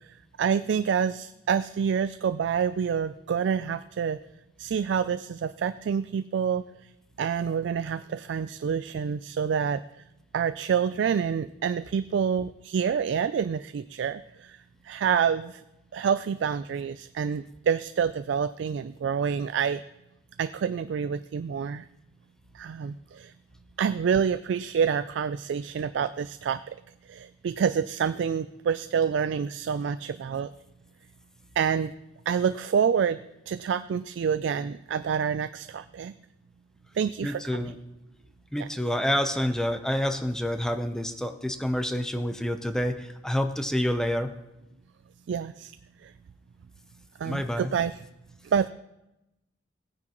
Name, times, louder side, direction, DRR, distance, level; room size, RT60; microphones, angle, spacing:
voice 1, 0.4-4.2 4.6-6.6 7.2-9.8 10.3-14.6 14.8-15.6 15.9-19.8 20.4-21.9 22.5-23.3 23.8-26.7 27.1-30.5 31.6-31.9 32.3-33.2 33.5-36.1 37.0-37.7 38.6-38.7 45.3-45.7 46.0-46.1 47.2-47.9 48.4-48.7, right 7 dB, 70° right, 12 dB, 0.3 m, -27 dB
voice 2, 37.2-37.8 38.5-44.3 47.2-47.7, equal, 5° left, 7 dB, 0.7 m, -28 dB
17.0 x 9.6 x 3.0 m, 0.91 s
head